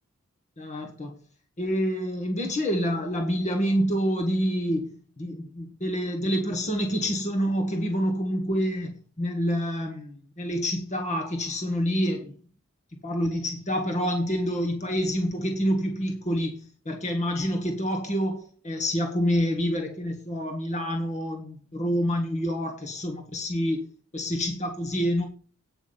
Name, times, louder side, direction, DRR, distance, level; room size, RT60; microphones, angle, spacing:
voice 1, 0.6-1.1 1.6-12.3 12.9-23.8 24.1-25.3, equal, 35° left, 1.7 m, -27 dB
9.4 x 6.1 x 7.1 m
head